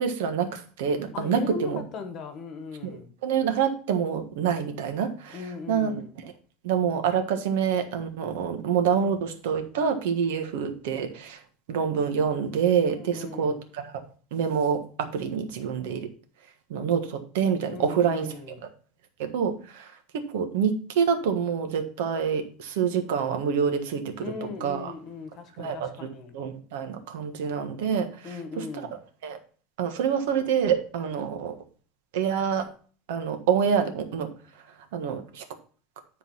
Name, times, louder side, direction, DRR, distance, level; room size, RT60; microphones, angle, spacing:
voice 1, 0.0-1.8 2.8-3.0 3.2-5.4 5.7-6.3 6.6-11.4 11.7-13.9 14.3-16.1 16.7-18.3 19.2-24.3 24.6-24.9 25.6-26.1 26.3-28.3 28.6-28.7 29.2-29.4 29.8-31.5 32.1-32.7 33.1-34.3 34.9-35.4, right 7 dB, 80° right, 7 dB, 1.5 m, -27 dB
voice 2, 1.1-3.1 5.3-6.1 12.9-13.6 17.7-18.6 24.2-26.3 28.2-28.9, left 4 dB, 30° left, 8 dB, 1.2 m, -38 dB
10.5 x 4.1 x 5.5 m, 0.42 s
supercardioid pair, 175°, 0 cm